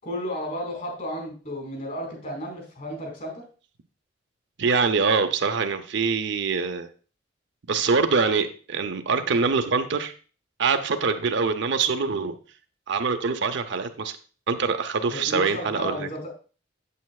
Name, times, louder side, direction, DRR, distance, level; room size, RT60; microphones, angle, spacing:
voice 1, 0.0-3.4 15.1-16.3, equal, 45° left, 0 dB, 4.6 m, -33 dB
voice 2, 4.6-6.9 7.7-10.1 10.6-12.3 12.9-14.1 14.5-16.1, right 5 dB, 65° right, 7 dB, 0.6 m, -24 dB
8.4 x 8.2 x 2.4 m, 0.37 s
head